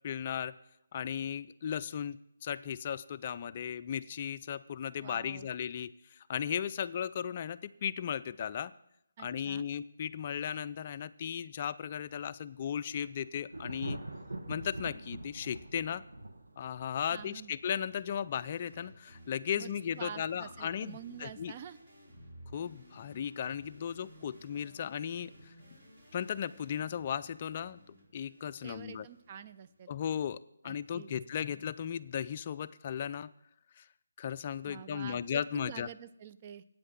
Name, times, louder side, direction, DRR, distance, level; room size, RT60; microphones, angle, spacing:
voice 1, 0.0-0.5 0.9-2.2 2.4-8.7 9.2-14.0 14.5-16.0 16.6-21.5 22.5-25.5 26.1-29.1 29.9-30.4 30.6-33.3 33.8-33.9 34.2-35.9, left 8 dB, 35° left, 14 dB, 0.4 m, -36 dB
voice 2, 5.0-5.5 9.2-9.7 17.1-17.5 19.6-21.8 28.6-29.9 30.6-31.1 34.6-36.6, right 8 dB, 30° right, 12 dB, 0.4 m, -47 dB
Thunder, 12.9-18.3, right 2 dB, 85° right, 1.3 m, -44 dB
sound 1, 18.3-29.8, equal, 50° right, 3.9 m, -56 dB
8.9 x 7.7 x 6.4 m, 0.78 s
figure-of-eight pair, 160°, 0 cm